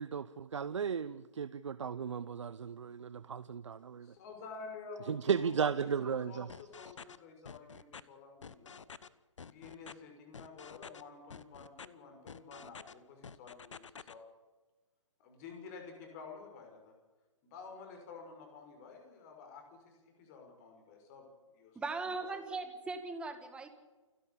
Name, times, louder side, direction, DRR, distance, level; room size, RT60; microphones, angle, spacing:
voice 1, 0.0-4.1 5.1-6.5, right 6 dB, 65° right, 15 dB, 0.8 m, -35 dB
voice 2, 4.0-8.8 9.4-14.2 15.2-16.9 17.4-19.9 20.2-21.3 21.5-21.8 22.2-22.4, left 4 dB, 30° left, 3 dB, 6.2 m, -51 dB
sound 1, 6.5-7.2 7.5-8.0 8.4-9.1 9.4-9.9 10.3-11.0 11.3-11.9 12.3-12.9 13.2-14.1, left 6 dB, 70° left, 1.1 m, -49 dB
voice 3, 21.8-23.7, right 3 dB, 5° right, 8 dB, 1.7 m, -39 dB
29.0 x 11.0 x 8.6 m, 1.2 s
figure-of-eight pair, 140°, 16 cm